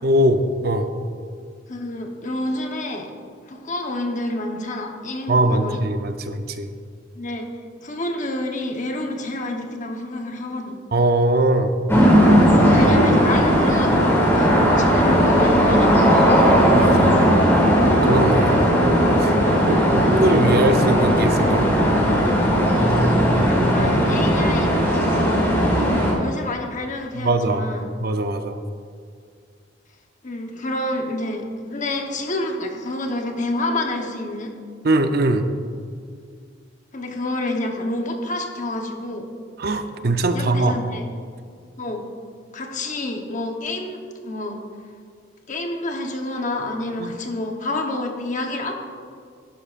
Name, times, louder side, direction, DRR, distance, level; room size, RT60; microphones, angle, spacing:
voice 1, 0.0-0.9 5.3-6.7 10.9-11.7 12.3-13.0 16.7-17.2 18.0-18.6 19.2-19.3 19.7-21.7 23.6-24.3 27.1-27.7 28.0-28.6 34.8-35.5 39.6-40.7 47.0-47.1, right 1 dB, 55° right, 8 dB, 0.6 m, -21 dB
voice 2, 1.7-3.1 3.5-5.8 7.1-7.5 7.8-10.8 12.8-16.4 19.6-19.9 23.5-27.9 30.2-34.5 36.9-39.3 40.3-41.0 41.8-42.0 42.5-44.6 45.5-48.7, left 1 dB, 40° left, 3 dB, 1.0 m, -28 dB
sound 1, 11.9-26.1, equal, 15° left, 2.0 m, -17 dB
11.5 x 11.0 x 2.5 m, 2.1 s
head